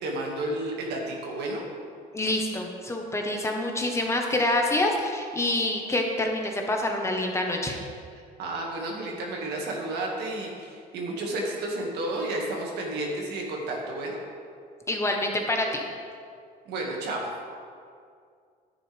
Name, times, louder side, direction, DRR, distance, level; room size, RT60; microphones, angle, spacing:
voice 1, 0.0-1.6 8.4-14.2 16.7-17.3, right 2 dB, 80° right, -1 dB, 2.0 m, -31 dB
voice 2, 2.1-7.8 14.9-15.8, left 1 dB, 15° left, 1 dB, 1.2 m, -26 dB
10.0 x 9.0 x 3.5 m, 2.3 s
cardioid pair, 110°, 17 cm